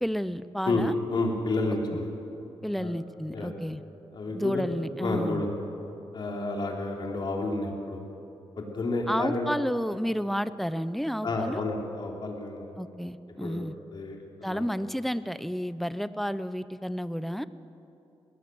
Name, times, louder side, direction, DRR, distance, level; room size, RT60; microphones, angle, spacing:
voice 1, 0.0-0.9 2.6-3.8 4.3-5.5 9.1-11.6 12.8-13.7 14.4-17.5, equal, ahead, 14 dB, 0.6 m, -31 dB
voice 2, 0.7-2.1 2.7-2.9 3.3-3.5 4.1-4.7 5.0-5.6 6.1-8.1 8.6-9.5 11.2-12.7 13.4-14.7, left 2 dB, 50° left, 0 dB, 3.4 m, -30 dB
21.0 x 17.5 x 7.8 m, 2.9 s
cardioid pair, 110°, 10 cm